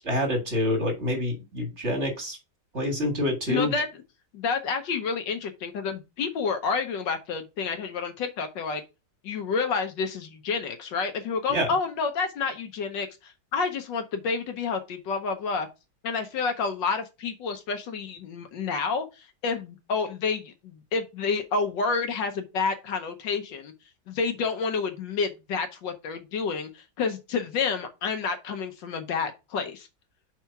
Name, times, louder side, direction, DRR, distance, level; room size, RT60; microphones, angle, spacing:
voice 1, 0.0-2.4 2.7-3.7 11.5-11.7, left 1 dB, 35° right, 2.0 m, -27 dB
voice 2, 3.5-4.0 4.3-8.8 9.2-15.7 16.0-23.7 24.1-29.9, left 5 dB, 70° left, 1.4 m, -29 dB
4.7 x 4.6 x 5.6 m
omnidirectional pair, 2.2 m